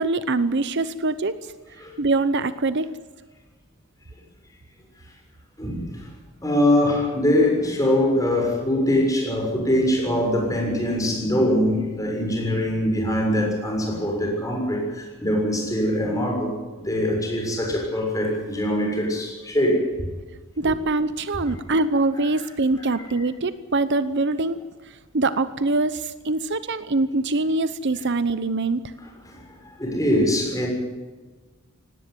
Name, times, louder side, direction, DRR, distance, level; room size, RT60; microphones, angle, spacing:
voice 1, 0.0-1.5 2.0-2.9 20.6-28.9, right 3 dB, 55° right, 13 dB, 0.8 m, -24 dB
voice 2, 5.6-6.0 6.4-16.5 16.8-20.1 29.3-29.4 29.6-30.7, left 1 dB, 15° left, 1 dB, 6.7 m, -23 dB
18.5 x 17.5 x 9.7 m, 1.3 s
head